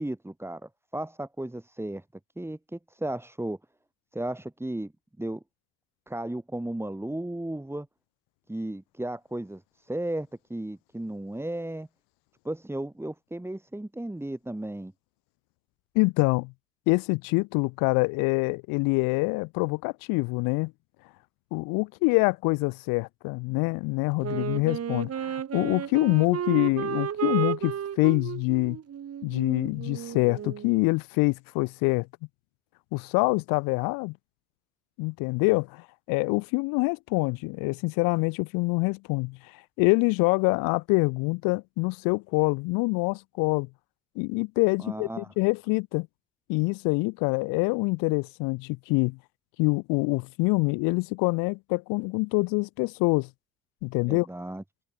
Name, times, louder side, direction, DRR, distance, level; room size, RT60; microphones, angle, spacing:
voice 1, 0.0-2.0 2.4-3.6 4.1-4.9 5.2-5.4 6.1-7.9 8.5-11.9 12.5-14.9 44.8-45.3 54.1-54.6, right 1 dB, 5° right, 3.5 m, -34 dB
voice 2, 15.9-16.5 16.9-20.7 21.5-28.8 29.2-32.1 32.9-34.1 35.0-43.7 44.1-46.1 46.5-49.2 49.6-53.3 53.8-54.3, left 27 dB, 80° left, 1.3 m, -25 dB
Wind instrument woodwind instrument, 24.2-30.8, right 9 dB, 50° right, 3.0 m, -33 dB
supercardioid pair, 75°, 33 cm